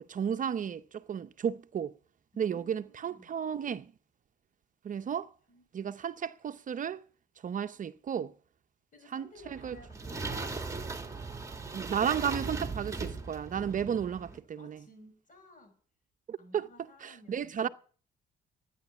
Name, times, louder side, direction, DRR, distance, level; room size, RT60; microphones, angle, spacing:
voice 1, 0.1-1.9 2.4-3.9 4.8-5.3 5.7-7.0 7.4-8.3 9.1-9.8 11.7-14.8 16.3-16.7 17.0-17.7, right 8 dB, 45° right, 0.7 m, -33 dB
voice 2, 2.3-3.3 5.5-6.0 8.9-10.9 14.0-15.8 16.4-17.7, left 1 dB, 45° left, 6.6 m, -56 dB
sound 1, 9.4-14.4, right 3 dB, 15° right, 2.1 m, -38 dB
13.0 x 9.9 x 8.3 m
cardioid pair, 95°, 18 cm